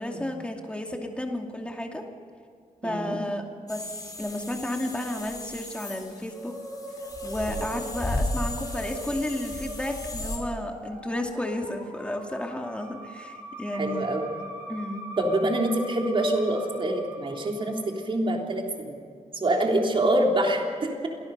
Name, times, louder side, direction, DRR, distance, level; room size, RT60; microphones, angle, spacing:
voice 1, 0.0-2.0 2.8-3.4 3.7-6.5 7.2-14.1 14.7-15.1, left 1 dB, 10° left, 2 dB, 2.5 m, -32 dB
voice 2, 2.8-3.2 7.6-7.7 13.7-14.3 15.2-19.0 19.3-21.1, right 1 dB, 40° right, 1 dB, 3.5 m, -25 dB
sound 1, 3.7-10.4, left 1 dB, 30° left, 5.0 m, -35 dB
Musical instrument, 6.3-18.1, right 1 dB, 15° right, 5.8 m, -41 dB
27.5 x 18.5 x 5.5 m, 2.3 s
wide cardioid pair, 150°, 13 cm